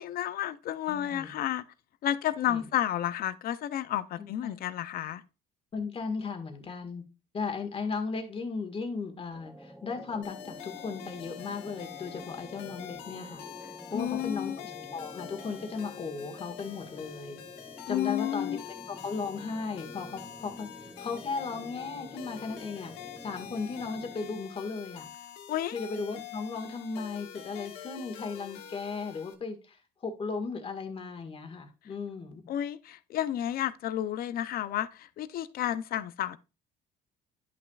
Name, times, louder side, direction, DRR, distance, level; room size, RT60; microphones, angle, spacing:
voice 1, 0.0-1.6 2.0-5.2 13.9-14.6 17.9-18.6 25.5-25.7 32.5-36.4, left 11 dB, 60° left, 0.6 m, -31 dB
voice 2, 0.9-1.3 2.5-2.6 4.2-4.6 5.7-7.0 7.3-13.4 13.9-17.4 17.9-18.6 18.9-25.1 25.7-32.4, left 4 dB, 35° left, 1.8 m, -36 dB
sound 1, 9.3-24.4, equal, 5° right, 0.7 m, -49 dB
sound 2, 10.2-29.3, left 11 dB, 90° left, 1.1 m, -46 dB
10.5 x 5.9 x 2.4 m
cardioid pair, 110°, 17 cm